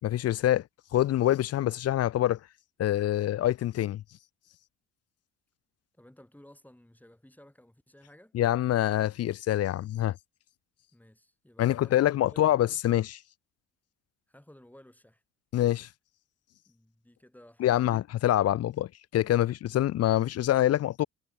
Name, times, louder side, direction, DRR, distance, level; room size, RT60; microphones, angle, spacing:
voice 1, 0.0-0.6 0.9-2.4 2.8-4.0 8.3-10.2 11.6-13.2 15.5-15.9 17.6-21.1, left 13 dB, 55° left, 0.5 m, -25 dB
voice 2, 5.9-8.4 10.9-12.5 14.3-15.2 16.7-18.0, left 1 dB, 5° left, 5.4 m, -55 dB
cardioid pair, 90°, 30 cm